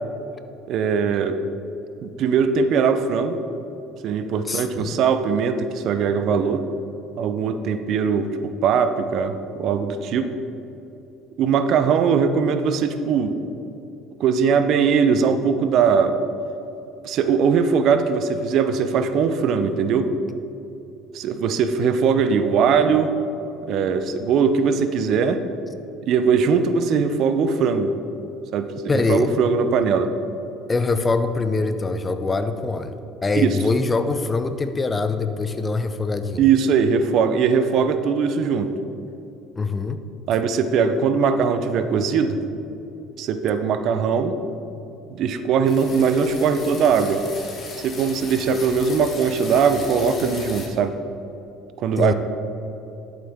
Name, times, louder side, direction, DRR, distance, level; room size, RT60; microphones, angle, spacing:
voice 1, 0.7-1.4 2.0-3.4 4.0-6.6 7.2-10.3 11.4-13.4 14.2-16.2 17.0-20.1 21.1-23.1 23.7-25.4 26.1-27.9 28.5-30.1 33.4-33.6 36.4-38.7 40.3-42.4 43.2-44.4 45.1-47.2 47.8-51.0 51.8-52.1, right 6 dB, 60° right, 9 dB, 0.6 m, -20 dB
voice 2, 4.4-5.0 28.9-29.3 30.7-36.4 39.6-40.0 52.0-52.1, left 3 dB, 20° left, 9 dB, 0.6 m, -23 dB
sound 1, 45.6-50.7, left 3 dB, 40° left, 1.9 m, -37 dB
11.5 x 7.6 x 3.6 m, 2.9 s
supercardioid pair, 100°, 0 cm